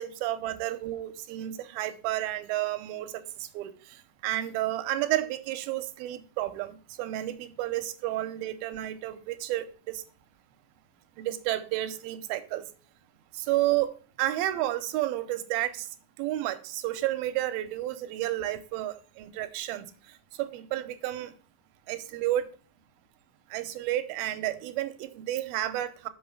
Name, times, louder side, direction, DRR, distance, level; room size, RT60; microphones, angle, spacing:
voice 1, 0.0-3.7 4.2-10.0 11.2-12.6 13.3-15.9 16.2-19.9 20.4-21.3 21.9-22.5 23.5-26.1, right 14 dB, 85° right, 2.6 m, -31 dB
6.3 x 5.8 x 7.1 m
omnidirectional pair, 4.3 m